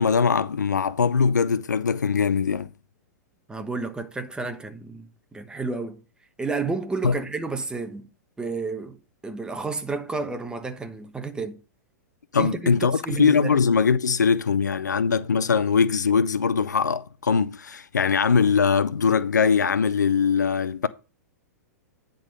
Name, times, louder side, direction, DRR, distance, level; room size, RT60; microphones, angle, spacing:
voice 1, 0.0-2.7 7.0-7.1 12.3-20.9, left 6 dB, 90° left, 0.6 m, -21 dB
voice 2, 3.5-5.1 5.3-6.0 6.4-8.1 8.4-9.0 9.2-11.6 12.3-13.6, right 3 dB, 10° right, 1.0 m, -31 dB
10.0 x 3.9 x 5.3 m
hypercardioid pair, 110°, 9 cm